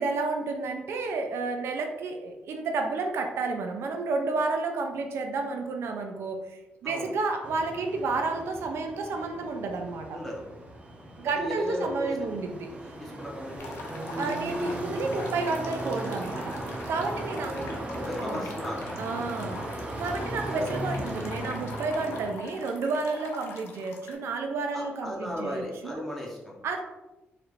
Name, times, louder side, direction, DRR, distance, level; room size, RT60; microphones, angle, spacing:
voice 1, 0.0-10.2 11.2-12.7 14.2-16.5 16.9-17.7 18.2-18.5 19.0-19.6 20.0-26.0 26.6-26.8, right 3 dB, 80° right, 4 dB, 0.5 m, -31 dB
voice 2, 6.8-7.1 10.1-10.4 11.4-12.1 13.0-14.0 17.1-17.2 17.5-18.9 20.2-20.8 24.7-26.5, left 1 dB, 10° left, -3 dB, 1.1 m, -36 dB
sound 1, 7.4-22.3, right 1 dB, 30° right, 0.7 m, -37 dB
sound 2, 13.6-24.1, left 4 dB, 80° left, 0.7 m, -44 dB
4.2 x 3.2 x 2.5 m, 1.0 s
cardioid pair, 105°, 4 cm